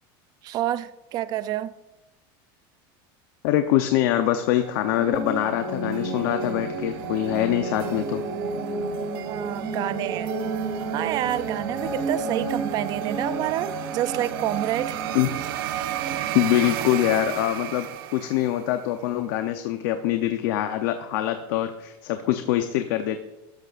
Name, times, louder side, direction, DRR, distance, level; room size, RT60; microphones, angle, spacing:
voice 1, 0.4-1.7 9.3-10.3 10.9-15.0, right 12 dB, 35° right, 14 dB, 0.4 m, -28 dB
voice 2, 3.4-8.2 15.1-15.3 16.3-23.2, left 13 dB, 70° left, 7 dB, 0.7 m, -24 dB
sound 1, 4.3-18.9, right 11 dB, 80° right, 0.8 m, -34 dB
sound 2, 5.0-16.3, right 2 dB, 15° right, 3.4 m, -32 dB
13.5 x 12.0 x 2.5 m, 1.0 s
supercardioid pair, 160°, 12 cm